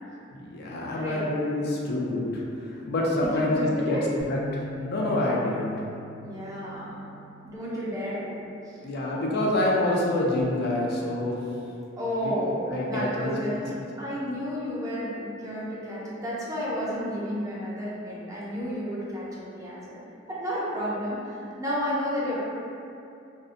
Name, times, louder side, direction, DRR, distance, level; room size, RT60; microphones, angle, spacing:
voice 1, 0.3-4.0 4.3-5.7 8.8-11.6 12.2-12.3 12.7-13.6, left 1 dB, 55° left, -3 dB, 0.4 m, -27 dB
voice 2, 0.9-1.3 3.1-4.0 6.2-6.9 7.5-8.4 8.7-8.8 12.0-20.0 20.3-22.3, equal, 20° right, -8 dB, 0.4 m, -31 dB
Bass guitar, 4.2-10.4, left 2 dB, 75° right, 0.7 m, -45 dB
2.6 x 2.0 x 2.5 m, 2.6 s
head